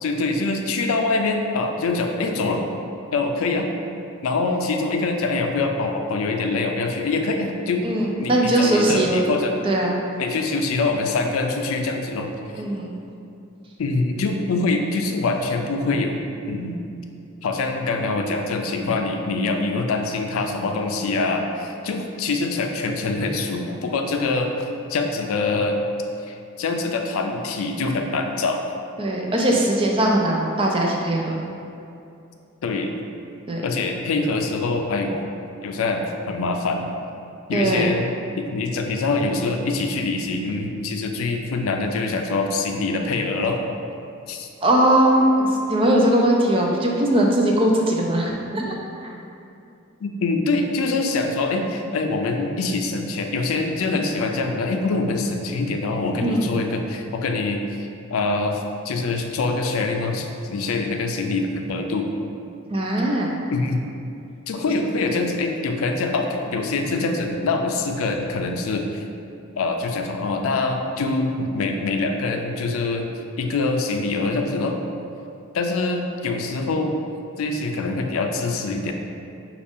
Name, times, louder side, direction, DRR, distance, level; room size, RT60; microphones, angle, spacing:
voice 1, 0.0-2.6 3.1-3.7 4.2-7.9 8.2-9.5 10.2-12.3 13.8-16.2 16.5-16.8 17.4-24.5 24.9-25.8 26.3-28.6 32.6-32.9 33.6-35.2 35.6-36.9 37.5-38.1 38.4-43.6 44.3-44.5 50.0-62.1 63.5-63.8 64.5-69.0 69.6-73.1 73.4-74.8 75.5-77.0 77.4-78.9, left 3 dB, 85° left, 4 dB, 0.4 m, -24 dB
voice 2, 7.8-9.3 9.6-10.0 12.5-12.9 29.0-31.3 33.5-33.6 37.5-37.9 44.6-48.8 49.0-49.1 56.2-56.5 62.7-63.4, right 1 dB, 25° right, -1 dB, 0.4 m, -20 dB
5.1 x 2.4 x 3.5 m, 2.6 s
head